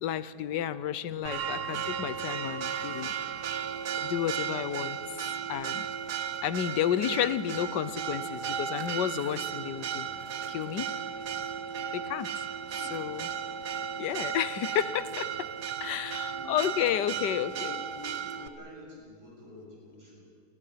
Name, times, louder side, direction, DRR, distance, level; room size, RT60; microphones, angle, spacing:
voice 1, 0.0-3.1 4.0-5.2 5.5-5.8 6.4-10.1 10.5-10.9 11.9-12.4 12.7-13.3 14.0-15.5 15.8-17.8, left 10 dB, 85° left, 15 dB, 1.5 m, -31 dB
Church bell, 1.3-18.5, right 8 dB, 75° right, 1.5 m, -35 dB
voice 2, 16.3-20.2, left 2 dB, 25° right, -3 dB, 8.1 m, -48 dB
29.0 x 22.5 x 5.8 m, 2.1 s
omnidirectional pair, 1.8 m